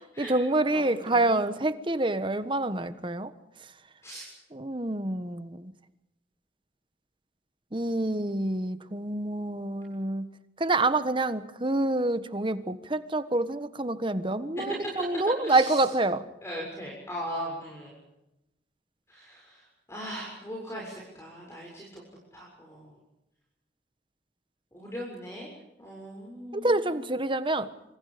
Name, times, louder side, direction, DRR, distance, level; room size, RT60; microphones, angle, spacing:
voice 1, 0.2-3.3 4.5-5.7 7.7-10.3 10.6-16.3 26.5-27.7, right 2 dB, 30° right, 11 dB, 1.4 m, -27 dB
voice 2, 0.7-1.4 4.0-4.3 14.5-14.8 15.4-15.8 16.4-18.0 19.1-22.0 22.3-23.0 24.7-25.5 25.8-26.7, equal, 15° left, -2 dB, 6.9 m, -39 dB
27.0 x 26.0 x 5.2 m, 0.90 s
head